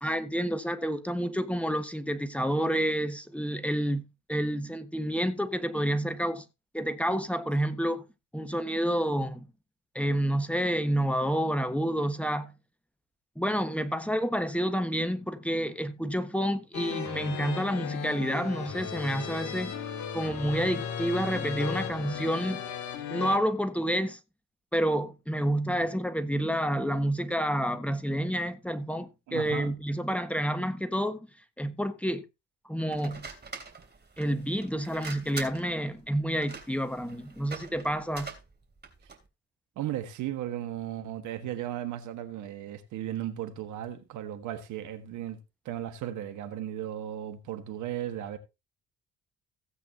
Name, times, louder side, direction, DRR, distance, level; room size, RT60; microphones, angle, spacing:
voice 1, 0.0-4.0 4.3-6.4 6.7-8.1 8.3-9.5 9.9-12.5 13.4-19.8 20.1-22.6 23.1-24.2 24.7-31.2 31.6-32.2 32.6-33.3 34.2-38.3, equal, 5° left, 1.4 m, -29 dB
sound 1, 16.7-23.4, left 8 dB, 60° left, 2.1 m, -36 dB
voice 2, 29.3-29.7 39.8-45.4 45.6-48.4, right 11 dB, 60° right, 1.5 m, -36 dB
sound 2, 32.9-39.3, right 4 dB, 30° right, 3.1 m, -44 dB
16.0 x 8.5 x 2.8 m
figure-of-eight pair, 45°, 33 cm